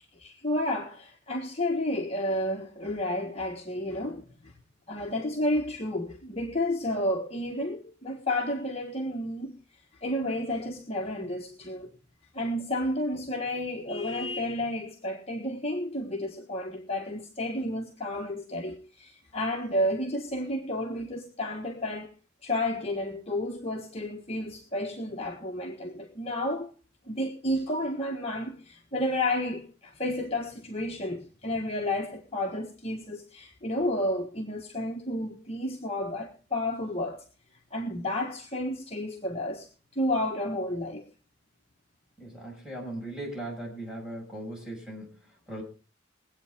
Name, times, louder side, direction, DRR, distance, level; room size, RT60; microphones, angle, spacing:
voice 1, 0.2-4.5 4.9-9.5 10.0-11.9 12.3-22.1 22.4-26.7 27.1-37.2 37.7-39.7 39.9-41.0, left 1 dB, 30° left, 1.6 m, -31 dB
voice 2, 42.2-45.6, right 1 dB, 5° right, 5.9 m, -39 dB
22.5 x 8.7 x 3.7 m
head